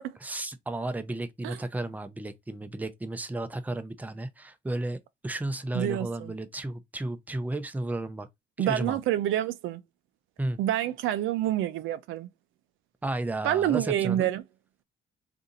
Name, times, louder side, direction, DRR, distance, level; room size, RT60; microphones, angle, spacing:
voice 1, 0.2-5.0 5.2-8.3 8.6-9.0 10.4-10.6 13.0-14.3, right 2 dB, 10° right, 0.5 m, -33 dB
voice 2, 5.7-6.3 8.6-9.8 10.6-12.3 13.4-14.4, right 12 dB, 85° right, 0.4 m, -27 dB
2.7 x 2.5 x 3.9 m
cardioid pair, 90°, 20 cm